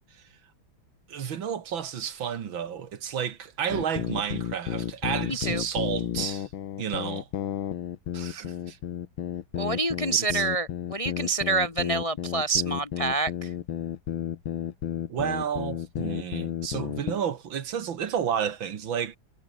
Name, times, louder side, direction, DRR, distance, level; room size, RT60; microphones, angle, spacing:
voice 1, 1.1-6.5 6.8-7.3 8.1-8.8 10.2-10.4 15.1-19.2, right 8 dB, 75° right, 2.4 m, -31 dB
sound 1, 3.7-17.2, left 10 dB, 90° left, 2.1 m, -32 dB
voice 2, 5.3-5.6 9.6-13.5, right 3 dB, 25° left, 0.7 m, -27 dB
omnidirectional pair, 2.2 m